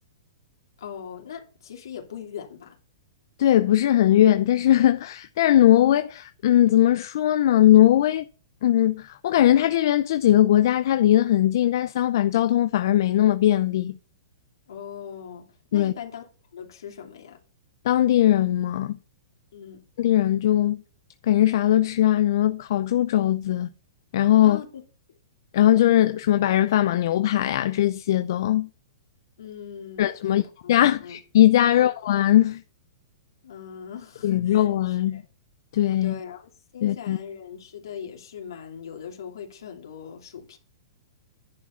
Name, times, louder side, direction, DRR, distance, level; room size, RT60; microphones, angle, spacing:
voice 1, 0.8-2.8 14.7-16.3 16.5-17.4 19.5-19.8 24.4-24.8 25.1-25.2 29.4-30.7 31.0-31.2 31.7-31.9 33.4-35.2 36.0-40.6, left 8 dB, 80° left, 2.7 m, -40 dB
voice 2, 3.4-8.3 8.6-14.0 15.7-15.9 17.8-19.0 20.0-20.8 21.2-23.7 24.1-24.6 25.5-28.7 30.0-30.4 30.7-32.6 34.2-35.2 35.7-36.2 36.8-37.2, left 12 dB, 60° left, 0.5 m, -20 dB
10.5 x 4.8 x 5.8 m
hypercardioid pair, 150°, 2 cm